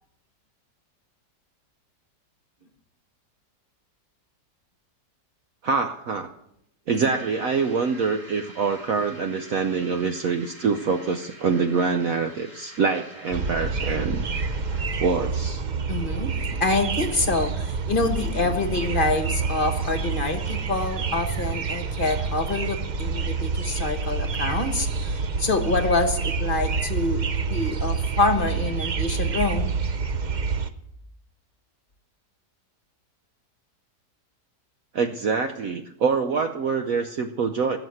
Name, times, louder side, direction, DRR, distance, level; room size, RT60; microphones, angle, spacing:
voice 1, 5.6-6.3 6.9-14.2 15.0-15.6 34.9-37.8, right 5 dB, 60° right, 7 dB, 1.1 m, -25 dB
sound 1, 6.9-15.2, equal, 30° right, 6.7 m, -47 dB
sound 2, 13.3-30.7, right 5 dB, 80° right, 0.4 m, -27 dB
voice 2, 15.9-16.3 16.6-27.2 27.5-29.7, left 3 dB, 35° left, 7 dB, 1.2 m, -26 dB
18.5 x 7.3 x 7.8 m, 0.77 s
omnidirectional pair, 1.9 m